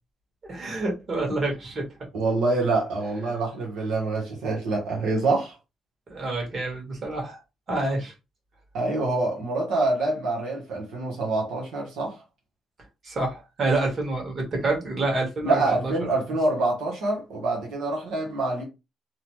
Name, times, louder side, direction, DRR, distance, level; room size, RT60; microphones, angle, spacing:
voice 1, 0.5-1.8 6.1-7.4 7.7-8.1 13.0-15.9, right 2 dB, 45° right, 1.4 m, -27 dB
voice 2, 2.1-5.5 8.7-12.2 15.4-18.6, right 2 dB, 85° right, 1.0 m, -26 dB
2.8 x 2.2 x 3.0 m
cardioid pair, 90°, 0 cm